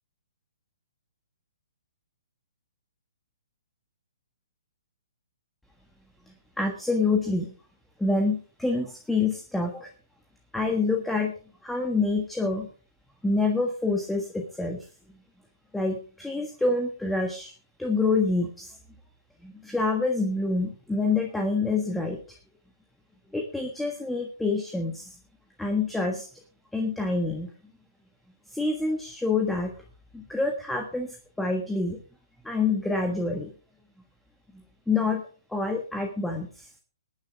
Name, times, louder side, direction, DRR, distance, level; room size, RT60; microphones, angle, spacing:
voice 1, 6.6-7.5 8.0-9.9 10.5-11.3 11.6-12.7 13.2-14.8 15.7-17.5 17.8-18.8 19.4-22.4 23.3-25.2 25.6-26.3 26.7-27.5 28.5-29.7 30.1-32.0 32.4-33.5 34.9-35.2 35.5-36.7, left 3 dB, 5° left, 3 dB, 1.4 m, -27 dB
19.5 x 10.5 x 3.5 m, 0.38 s
hypercardioid pair, 155°, 2 cm